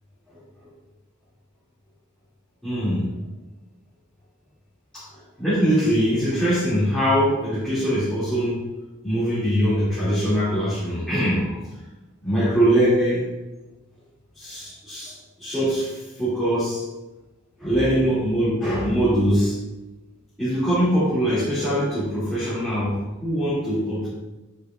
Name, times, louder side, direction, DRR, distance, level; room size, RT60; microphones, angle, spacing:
voice 1, 2.6-3.1 5.4-8.7 9.0-11.6 12.2-13.3 14.4-16.9 17.6-19.6 20.4-24.1, equal, ahead, -13 dB, 2.2 m, -22 dB
7.2 x 6.6 x 2.3 m, 1.1 s
head